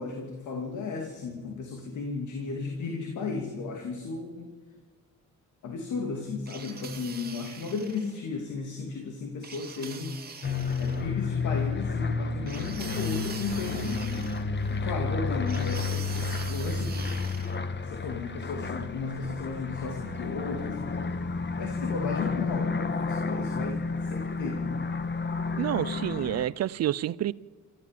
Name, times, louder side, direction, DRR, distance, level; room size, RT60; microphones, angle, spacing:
voice 1, 0.0-4.5 5.6-10.2 10.8-14.4 14.7-17.2 17.8-20.8 21.6-24.9, left 4 dB, 75° left, 2.8 m, -35 dB
sound 1, 6.5-8.2 9.4-11.1 12.5-14.8 15.5-17.6, right 5 dB, 30° right, 2.4 m, -43 dB
sound 2, 10.4-26.4, left 4 dB, 35° left, 1.6 m, -31 dB
voice 2, 25.6-27.3, right 12 dB, 55° right, 0.6 m, -28 dB
27.5 x 14.5 x 7.6 m
cardioid pair, 90°, 30 cm